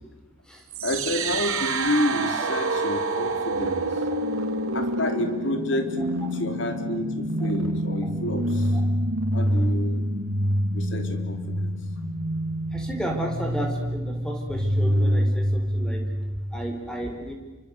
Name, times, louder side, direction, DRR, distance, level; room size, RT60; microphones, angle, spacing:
sound 1, 0.7-16.7, right 1 dB, 85° right, 2.9 m, -26 dB
voice 1, 0.8-4.2 4.5-8.8 9.3-10.0 10.7-11.7 12.3-12.4, left 1 dB, 60° left, 6 dB, 3.6 m, -30 dB
voice 2, 12.7-16.0 16.5-17.3, right 1 dB, 5° left, 2 dB, 4.5 m, -33 dB
29.0 x 25.0 x 8.1 m, 1.3 s
head